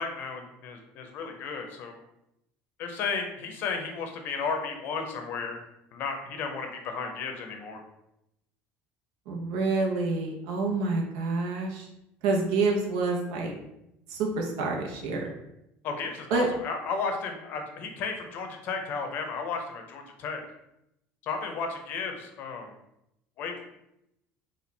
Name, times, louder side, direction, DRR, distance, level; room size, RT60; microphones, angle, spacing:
voice 1, 0.0-2.0 2.8-5.6 5.9-7.8 15.8-20.4 21.2-22.7 23.4-23.6, left 5 dB, 45° left, 4 dB, 0.7 m, -33 dB
voice 2, 9.3-11.9 12.2-13.5 14.1-15.3 16.3-16.5, right 3 dB, 75° right, 1 dB, 1.0 m, -27 dB
4.3 x 2.5 x 4.1 m, 0.84 s
cardioid pair, 165°, 5 cm